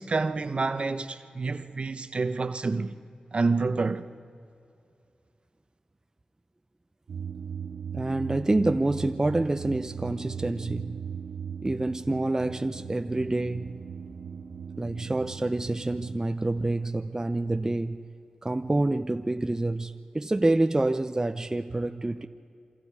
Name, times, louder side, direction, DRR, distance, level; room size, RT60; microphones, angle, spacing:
voice 1, 0.0-3.0 3.3-4.1, right 3 dB, 50° right, 1.0 m, -28 dB
sound 1, 7.1-16.2, right 7 dB, 80° right, 0.7 m, -38 dB
voice 2, 7.9-11.0 11.6-13.8 14.8-18.1 18.4-22.3, right 2 dB, 25° right, 0.7 m, -27 dB
28.0 x 25.0 x 4.8 m
cardioid pair, 60°, 2 cm